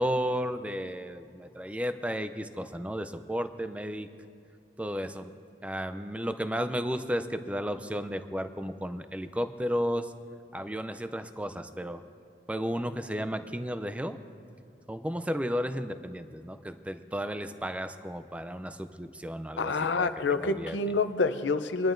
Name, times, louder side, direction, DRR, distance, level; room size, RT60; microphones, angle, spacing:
voice 1, 0.0-4.1 4.8-5.3 5.6-10.1 10.5-12.0 12.5-14.2 14.9-20.1 20.4-20.8, equal, 5° right, 10 dB, 0.4 m, -33 dB
voice 2, 19.6-21.9, left 3 dB, 80° left, 11 dB, 0.6 m, -27 dB
23.5 x 11.0 x 2.6 m, 2.6 s
head